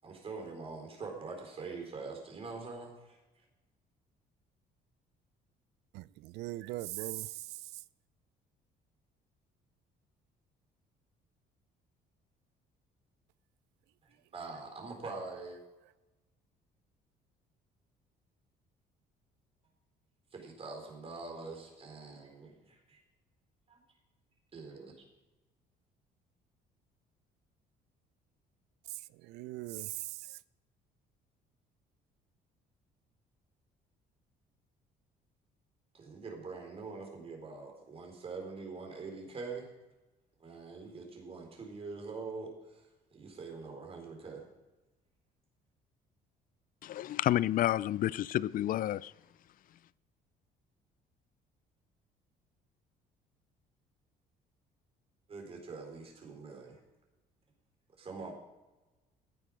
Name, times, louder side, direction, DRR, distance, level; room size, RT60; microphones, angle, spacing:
voice 1, 0.0-3.2 14.3-15.6 20.3-23.0 23.7-23.8 24.5-24.9 35.9-39.7 40.4-42.9 43.1-44.5 55.3-56.8 58.0-58.3, right 4 dB, 35° right, 4.3 m, -44 dB
voice 2, 5.9-7.8 28.9-30.4, right 18 dB, 85° right, 0.4 m, -41 dB
voice 3, 46.8-49.1, left 13 dB, 55° left, 0.5 m, -30 dB
15.0 x 9.9 x 5.1 m
cardioid pair, 110°, 17 cm